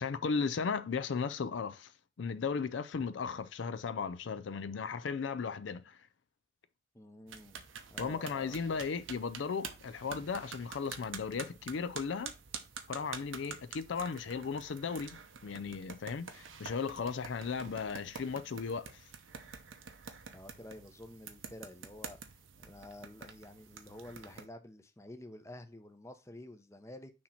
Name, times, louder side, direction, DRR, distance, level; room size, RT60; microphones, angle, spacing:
voice 1, 0.0-1.9 2.2-6.0 8.0-12.3 12.9-19.0, left 5 dB, 70° left, 0.4 m, -36 dB
voice 2, 6.9-8.6 20.3-22.2 22.6-27.1, left 1 dB, 15° left, 0.6 m, -50 dB
sound 1, 7.3-24.5, right 6 dB, 85° right, 0.9 m, -48 dB
6.4 x 2.9 x 5.7 m
head